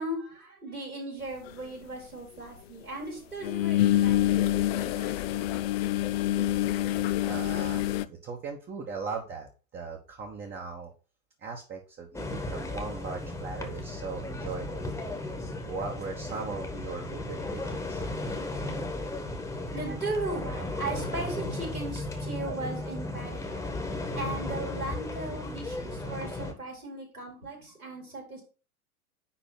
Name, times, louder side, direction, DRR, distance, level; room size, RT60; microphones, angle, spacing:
voice 1, 0.0-5.5 19.7-23.7 24.1-28.4, right 2 dB, 80° right, -2 dB, 4.6 m, -37 dB
sound 1, 1.5-1.6 3.4-8.0, left 14 dB, 45° left, 0.6 m, -26 dB
voice 2, 7.2-10.9 11.4-14.9 15.6-18.0, right 4 dB, 25° right, 1 dB, 1.4 m, -39 dB
sound 2, 12.1-26.5, left 2 dB, 5° left, 1.5 m, -35 dB
10.0 x 3.4 x 5.8 m, 0.35 s
figure-of-eight pair, 95°, 43 cm